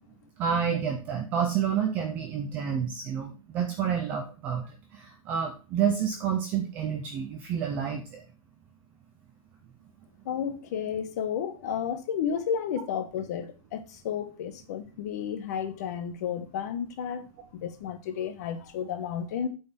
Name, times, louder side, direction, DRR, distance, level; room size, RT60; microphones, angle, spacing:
voice 1, 0.4-8.2, right 8 dB, 10° right, 0.4 m, -29 dB
voice 2, 10.2-17.2 17.5-19.5, left 8 dB, 30° left, 1.0 m, -32 dB
8.7 x 4.1 x 6.8 m
hypercardioid pair, 180°, 18 cm